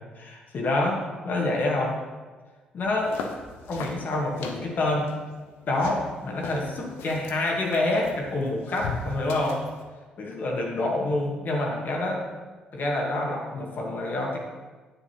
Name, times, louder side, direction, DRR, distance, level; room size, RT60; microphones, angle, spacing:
voice 1, 0.0-2.0 2.7-3.2 3.7-5.1 5.7-9.6 10.2-12.2 12.7-14.4, left 2 dB, 50° left, -1 dB, 1.4 m, -27 dB
sound 1, 2.8-9.8, left 4 dB, 65° left, 0.7 m, -39 dB
8.8 x 7.0 x 2.8 m, 1.3 s
figure-of-eight pair, 45°, 4 cm